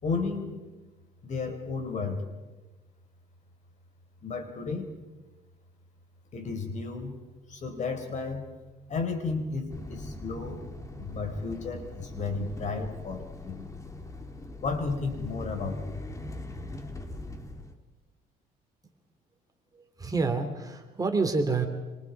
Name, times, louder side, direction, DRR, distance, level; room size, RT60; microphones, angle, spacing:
voice 1, 0.0-0.7 1.2-2.2 4.2-4.9 6.3-7.2 7.5-8.4 8.9-10.6 11.0-13.7 14.6-16.0, left 4 dB, 45° left, 5 dB, 5.0 m, -33 dB
sound 1, 9.7-17.7, left 2 dB, 20° left, 2.7 m, -41 dB
voice 2, 20.0-21.7, right 4 dB, 20° right, 5 dB, 3.1 m, -27 dB
27.0 x 26.0 x 4.9 m, 1.2 s
cardioid pair, 110°, 17 cm